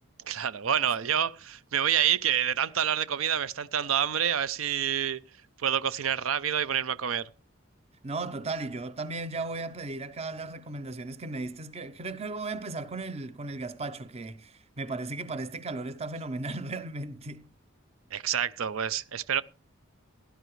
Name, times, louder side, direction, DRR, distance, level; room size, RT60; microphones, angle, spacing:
voice 1, 0.3-5.2 5.6-7.3 18.1-19.4, right 9 dB, 80° right, 0.5 m, -28 dB
voice 2, 8.0-17.5, right 3 dB, 30° right, 0.7 m, -36 dB
17.0 x 11.0 x 3.1 m
head